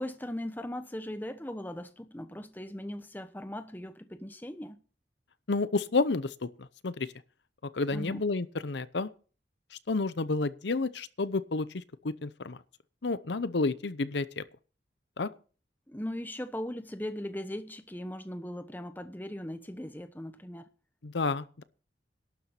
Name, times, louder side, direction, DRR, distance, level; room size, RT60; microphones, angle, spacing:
voice 1, 0.0-4.8 7.9-8.2 15.9-20.7, left 1 dB, 10° left, 0.9 m, -39 dB
voice 2, 5.5-7.1 7.7-9.1 9.7-12.6 13.0-14.4 15.2-15.3 21.0-21.6, left 3 dB, 75° left, 0.7 m, -30 dB
12.0 x 7.1 x 8.2 m
head